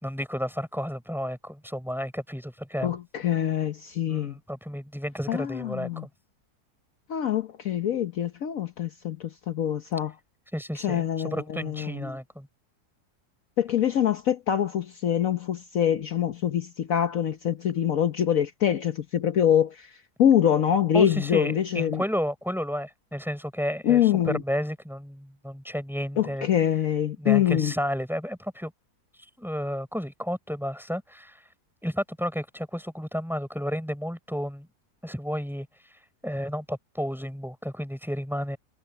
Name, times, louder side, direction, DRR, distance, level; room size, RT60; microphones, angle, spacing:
voice 1, 0.0-3.0 4.1-6.1 10.5-12.5 20.9-26.5 27.2-28.7 29.4-31.4 31.8-34.7 35.0-35.7 36.2-38.6, equal, ahead, 4.1 m, -32 dB
voice 2, 2.8-4.3 5.3-6.1 7.1-10.1 10.8-12.2 13.6-19.9 20.2-22.0 23.8-24.4 26.2-27.7, left 10 dB, 60° left, 1.3 m, -25 dB
omnidirectional pair, 1.7 m